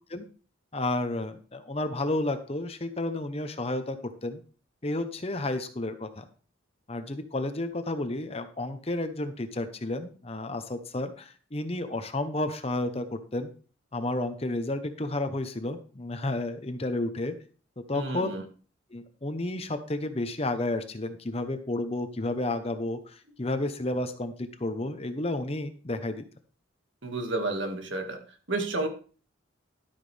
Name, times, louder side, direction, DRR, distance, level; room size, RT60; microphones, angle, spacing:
voice 1, 0.7-4.4 4.8-6.3 6.9-13.5 13.9-17.3 17.8-18.4 18.9-26.2, left 2 dB, 30° left, 9 dB, 0.9 m, -31 dB
voice 2, 17.9-18.4 27.0-28.2 28.5-28.9, right 2 dB, 65° right, 5 dB, 1.9 m, -30 dB
12.0 x 9.2 x 3.4 m, 0.38 s
head